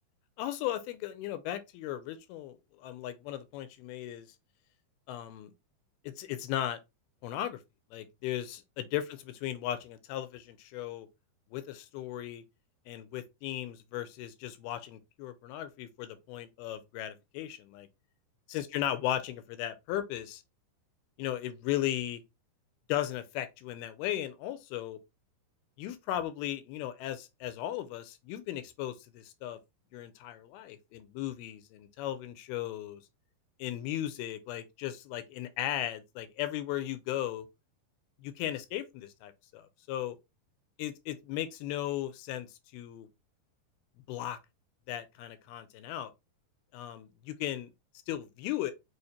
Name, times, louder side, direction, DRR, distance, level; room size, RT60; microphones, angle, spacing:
voice 1, 0.4-4.3 5.1-5.5 6.0-6.8 7.2-7.6 7.9-11.1 11.5-12.4 12.9-17.9 18.5-20.4 21.2-22.2 22.9-25.0 25.8-29.6 29.9-33.0 33.6-37.5 38.2-40.2 40.8-43.1 44.1-44.4 44.9-46.1 46.7-47.7 48.1-48.7, left 12 dB, 80° left, 2.5 m, -36 dB
6.4 x 2.5 x 2.8 m
omnidirectional pair, 4.5 m